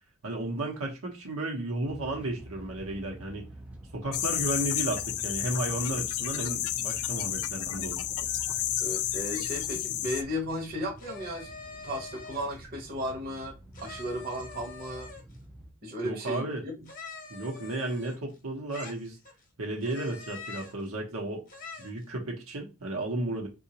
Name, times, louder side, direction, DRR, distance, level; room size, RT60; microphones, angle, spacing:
voice 1, 0.2-3.5 3.9-8.0 16.0-16.6 17.3-19.2 19.6-21.5 21.8-23.5, right 2 dB, 75° right, 0.9 m, -33 dB
sound 1, 1.8-15.7, right 1 dB, 5° right, 0.5 m, -47 dB
sound 2, 4.1-10.2, left 12 dB, 80° left, 0.3 m, -31 dB
voice 2, 8.8-11.5 11.8-13.6 13.8-15.1 15.8-16.9, equal, 45° right, 0.9 m, -35 dB
sound 3, 11.0-12.6 13.7-15.4 16.8-18.4 18.7-19.4 19.8-20.8 21.5-22.0, left 4 dB, 40° left, 0.9 m, -45 dB
3.8 x 2.4 x 2.8 m
head